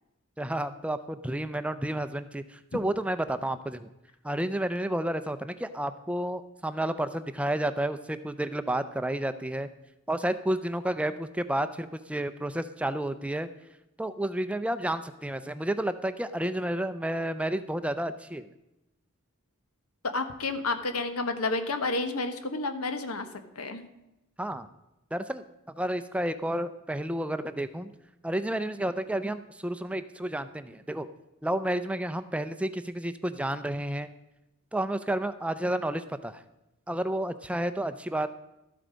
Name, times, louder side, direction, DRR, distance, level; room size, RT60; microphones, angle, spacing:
voice 1, 0.4-3.9 4.2-9.7 10.1-13.5 14.0-18.5 24.4-24.7 25.1-25.4 25.8-27.9 28.2-31.1 31.4-34.1 34.7-36.4 36.9-38.3, right 1 dB, 5° right, 11 dB, 0.4 m, -31 dB
voice 2, 20.0-23.3 23.6-23.9, left 3 dB, 85° left, 9 dB, 1.2 m, -30 dB
13.0 x 7.9 x 5.1 m, 0.92 s
head